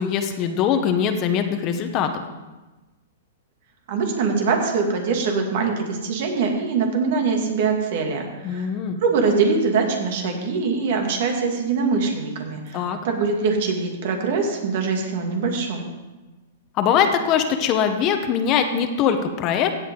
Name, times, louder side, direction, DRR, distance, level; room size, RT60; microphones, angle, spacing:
voice 1, 0.0-2.2 8.4-9.0 12.7-13.0 16.8-19.8, left 8 dB, 35° left, 7 dB, 1.1 m, -22 dB
voice 2, 3.9-8.7 9.0-15.8, right 4 dB, 60° right, 2 dB, 2.5 m, -23 dB
16.0 x 8.1 x 3.9 m, 1.2 s
hypercardioid pair, 130°, 0 cm